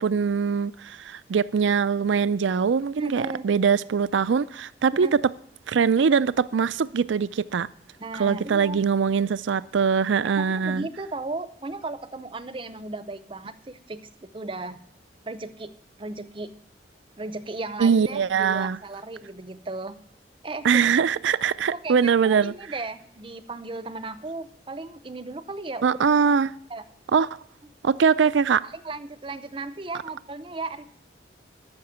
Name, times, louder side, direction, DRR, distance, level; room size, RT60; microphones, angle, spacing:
voice 1, 0.0-5.1 5.7-7.7 8.1-10.9 17.8-18.8 20.6-22.5 25.8-26.5 27.1-27.4 27.8-28.7, right 6 dB, 85° right, 0.4 m, -22 dB
voice 2, 3.0-3.5 4.9-5.1 8.0-8.8 10.4-14.8 15.3-15.7 16.0-16.5 17.2-20.0 20.4-20.9 21.7-26.0 26.7-26.8 27.1-27.2 27.6-27.7 28.6-30.9, right 2 dB, 30° right, 0.6 m, -35 dB
13.5 x 5.9 x 8.1 m
head